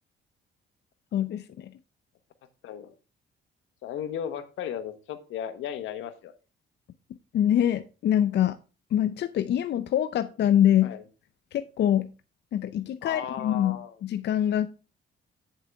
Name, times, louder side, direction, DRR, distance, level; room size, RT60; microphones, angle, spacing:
voice 1, 1.1-1.7 7.3-8.6 8.9-10.9 11.5-12.1 12.5-14.7, left 10 dB, 60° left, 0.5 m, -24 dB
voice 2, 2.6-2.9 3.8-6.3 10.8-11.0 13.0-14.0, left 9 dB, 85° left, 1.1 m, -35 dB
8.8 x 7.3 x 3.4 m
cardioid pair, 90°, 20 cm